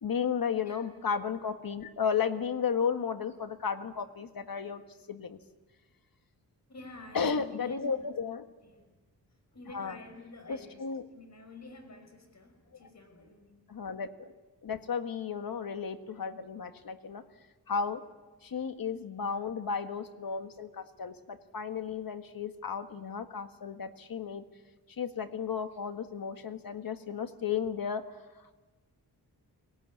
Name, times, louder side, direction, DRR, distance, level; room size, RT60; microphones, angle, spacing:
voice 1, 0.0-4.8 5.1-5.4 7.1-8.4 9.7-10.0 10.5-11.1 13.7-14.3 14.6-17.2 17.7-18.0 18.4-24.4 25.0-28.0, left 6 dB, 60° left, 8 dB, 1.7 m, -34 dB
voice 2, 6.7-8.3 8.6-8.9 9.5-10.8 11.1-13.6, left 2 dB, 45° left, 6 dB, 5.7 m, -49 dB
24.0 x 18.0 x 9.9 m, 1.2 s
wide cardioid pair, 110°, 39 cm